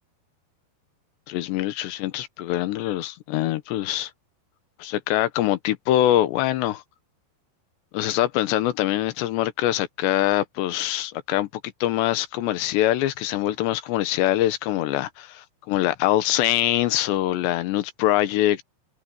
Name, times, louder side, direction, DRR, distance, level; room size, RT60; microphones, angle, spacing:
voice 1, 1.3-4.1 4.8-6.8 7.9-18.6, left 13 dB, 80° left, 3.3 m, -24 dB
open air
omnidirectional pair, 4.9 m